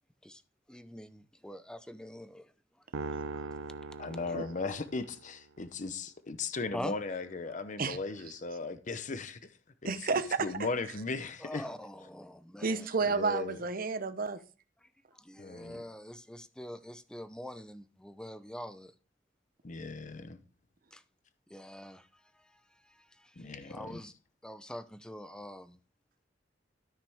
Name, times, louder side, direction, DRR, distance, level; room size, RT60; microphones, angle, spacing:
voice 1, 0.7-3.5 3.8-4.0 4.3-4.4 6.7-6.9 11.4-12.9 14.8-18.9 20.9-21.0 21.5-24.1 24.4-25.8, equal, 5° left, 0.6 m, -45 dB
sound 1, 2.9-5.3, right 4 dB, 90° right, 0.6 m, -40 dB
voice 2, 4.0-9.4 9.8-9.9 10.4-11.6 13.1-13.6 15.4-15.8 19.6-20.4 23.4-24.0, left 3 dB, 40° left, 0.8 m, -37 dB
voice 3, 9.8-10.7 12.6-14.4, right 4 dB, 50° right, 0.9 m, -31 dB
13.0 x 5.8 x 3.5 m
head